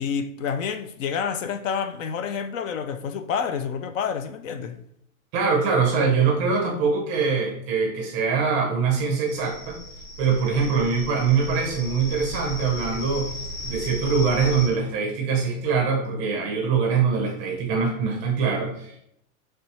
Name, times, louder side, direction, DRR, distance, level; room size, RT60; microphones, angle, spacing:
voice 1, 0.0-4.8, left 7 dB, 65° left, 0.5 m, -28 dB
voice 2, 5.3-9.8 10.2-13.3 13.6-19.1, right 5 dB, 15° right, 0.5 m, -23 dB
sound 1, 9.3-14.7, left 1 dB, 30° left, 1.1 m, -35 dB
5.8 x 3.2 x 2.9 m
supercardioid pair, 160°, 43 cm